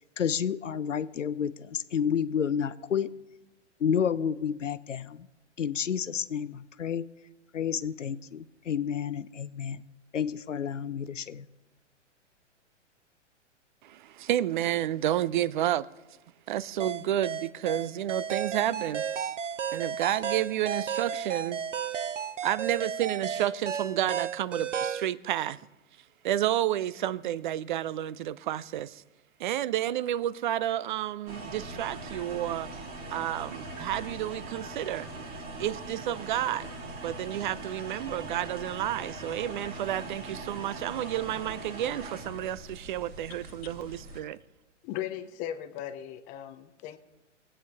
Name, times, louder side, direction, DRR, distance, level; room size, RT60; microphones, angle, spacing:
voice 1, 0.2-3.1 3.8-5.3 5.6-7.0 7.5-9.8 10.1-11.5, left 8 dB, 85° left, 0.7 m, -30 dB
voice 2, 13.8-15.9 16.5-19.0 19.7-21.6 22.4-25.6 26.2-29.0 29.4-32.7 33.1-35.1 35.6-36.7 37.0-44.4, right 12 dB, 45° right, 0.5 m, -30 dB
sound 1, 16.8-25.1, right 7 dB, 80° right, 0.7 m, -33 dB
sound 2, 31.3-44.2, right 2 dB, 25° right, 1.7 m, -41 dB
voice 3, 43.4-43.7 44.2-44.3 44.8-47.0, left 11 dB, 20° left, 0.5 m, -38 dB
20.0 x 8.6 x 3.5 m
figure-of-eight pair, 115°, 36 cm